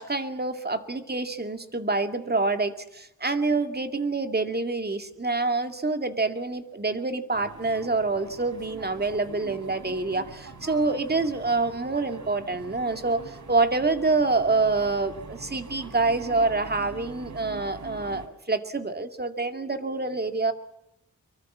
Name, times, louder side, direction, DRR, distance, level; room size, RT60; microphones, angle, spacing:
voice 1, 0.0-20.5, right 3 dB, 30° right, 7 dB, 2.2 m, -26 dB
sound 1, 7.3-18.3, right 3 dB, 70° right, 3.2 m, -43 dB
24.5 x 23.5 x 7.4 m, 0.83 s
wide cardioid pair, 95°, 30 cm